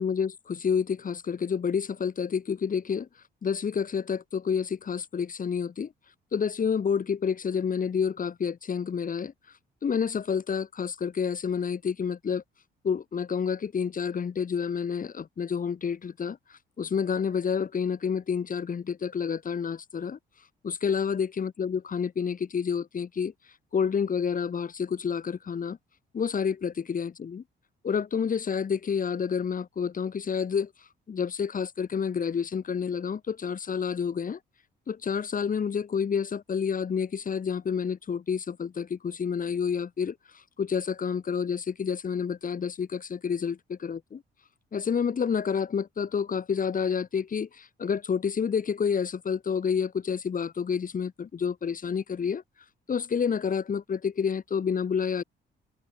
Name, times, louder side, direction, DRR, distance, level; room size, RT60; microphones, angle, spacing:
voice 1, 0.0-3.1 3.4-5.9 6.3-9.3 9.8-12.4 12.8-20.2 20.6-23.3 23.7-25.8 26.1-27.4 27.8-30.7 31.1-34.4 34.9-44.2 44.7-52.4 52.9-55.2, left 6 dB, 45° left, 2.5 m, -29 dB
cardioid pair, 90°, 20 cm